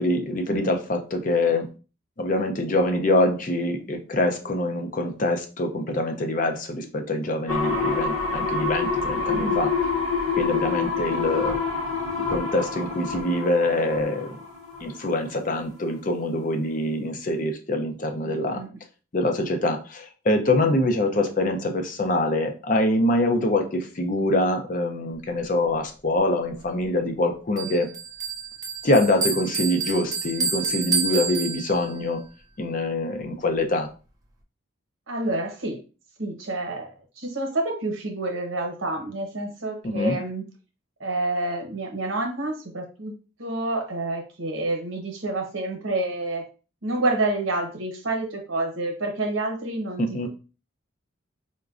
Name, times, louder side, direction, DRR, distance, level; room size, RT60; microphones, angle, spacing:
voice 1, 0.0-1.7 2.2-9.7 10.3-11.6 12.3-14.4 14.8-18.6 19.1-27.9 28.8-32.2 32.6-33.9 39.8-40.1 50.0-50.3, left 1 dB, 40° left, 5 dB, 0.5 m, -24 dB
sound 1, 7.5-15.1 15.5-15.6, left 4 dB, 90° left, 0.7 m, -27 dB
voice 2, 9.3-9.6 18.2-18.7 35.1-35.8 36.2-40.4 41.0-43.1 43.4-46.4 46.8-50.3, right 2 dB, 80° right, 2 dB, 0.9 m, -28 dB
Bell, 27.6-32.1, right 4 dB, 20° right, 0.4 m, -29 dB
4.8 x 2.2 x 2.4 m, 0.34 s
head